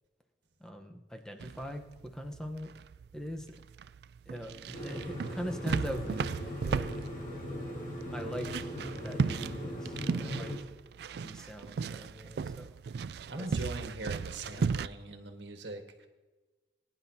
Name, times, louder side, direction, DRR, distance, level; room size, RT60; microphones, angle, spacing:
voice 1, 0.6-1.8 2.1-2.7 3.1-3.5 4.3-6.9 8.1-8.7 9.0-10.5 11.2-12.7 13.4-13.5 14.4-14.7, equal, 5° left, 4 dB, 0.9 m, -41 dB
sound 1, 1.4-14.9, right 5 dB, 60° right, 0.3 m, -36 dB
sound 2, 4.7-10.6, equal, 45° left, 2.0 m, -39 dB
voice 2, 13.3-16.1, right 2 dB, 85° right, 5 dB, 1.5 m, -41 dB
20.0 x 10.5 x 2.8 m, 1.2 s
head